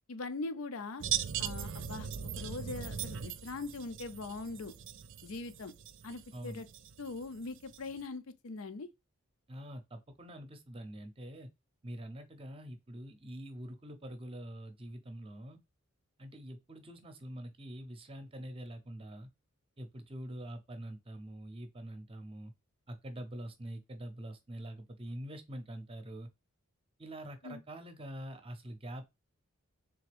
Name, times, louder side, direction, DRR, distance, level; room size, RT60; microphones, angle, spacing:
voice 1, 0.1-1.0 1.4-2.1 2.4-4.7 5.2-5.7 6.0-6.7 7.0-8.9 27.4-27.6, left 3 dB, 70° left, 0.5 m, -41 dB
sound 1, 1.0-8.0, right 9 dB, 55° right, 0.4 m, -40 dB
voice 2, 6.3-6.6 9.5-11.5 11.8-15.6 16.2-19.3 19.8-22.5 22.9-26.3 27.0-29.0, right 1 dB, 25° right, 0.7 m, -45 dB
3.5 x 3.4 x 3.4 m
head